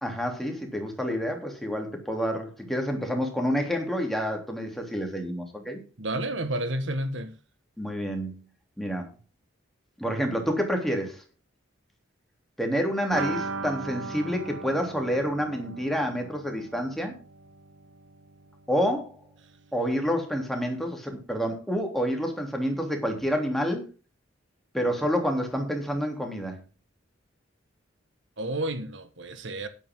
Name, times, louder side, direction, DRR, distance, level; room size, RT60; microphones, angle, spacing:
voice 1, 0.0-5.8 7.8-8.4 8.8-9.1 10.0-11.2 12.6-17.1 18.7-19.2 19.7-23.8 24.7-26.6, equal, ahead, 3.2 m, -28 dB
voice 2, 6.0-7.4 28.4-29.7, right 1 dB, 70° right, 1.6 m, -31 dB
sound 1, 13.1-18.7 19.0-19.1 19.4-19.5, right 4 dB, 85° right, 1.1 m, -38 dB
12.5 x 11.0 x 3.8 m
head